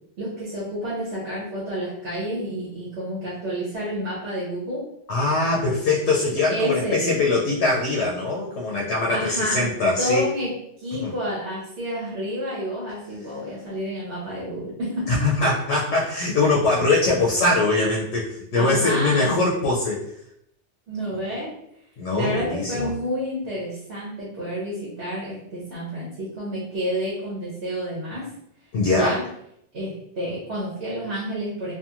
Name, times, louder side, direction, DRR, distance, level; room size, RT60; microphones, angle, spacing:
voice 1, 0.2-4.8 6.5-7.2 9.1-9.7 10.0-10.5 10.8-15.2 18.5-19.4 20.9-21.5 22.1-28.3 28.9-29.2 29.7-31.7, equal, 70° right, -7 dB, 1.1 m, -29 dB
voice 2, 5.1-10.3 11.0-11.1 15.1-20.0 22.0-22.9 28.7-29.2, left 2 dB, 80° left, -3 dB, 0.9 m, -22 dB
2.8 x 2.4 x 2.4 m, 0.75 s
omnidirectional pair, 1.1 m